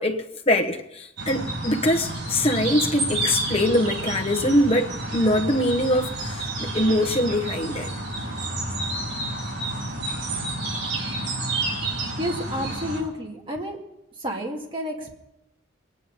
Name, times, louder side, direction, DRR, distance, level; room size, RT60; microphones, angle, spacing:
voice 1, 0.0-7.9, left 1 dB, 30° left, 1.1 m, -23 dB
sound 1, 1.2-13.0, right 2 dB, 60° right, 5.0 m, -30 dB
voice 2, 12.2-13.8 14.2-15.1, equal, 25° right, 2.2 m, -30 dB
23.0 x 9.6 x 5.4 m
head